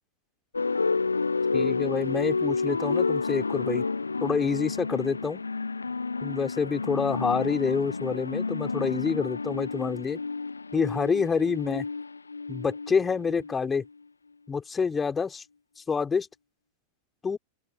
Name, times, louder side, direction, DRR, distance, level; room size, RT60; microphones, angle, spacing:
sound 1, 0.5-13.9, left 4 dB, 80° left, 1.7 m, -30 dB
voice 1, 1.5-3.8 4.2-5.4 6.2-10.2 10.7-11.9 12.5-13.8 14.5-15.4 15.9-16.3 17.2-17.4, left 5 dB, 15° left, 6.2 m, -27 dB
open air
figure-of-eight pair, 90°, 0 cm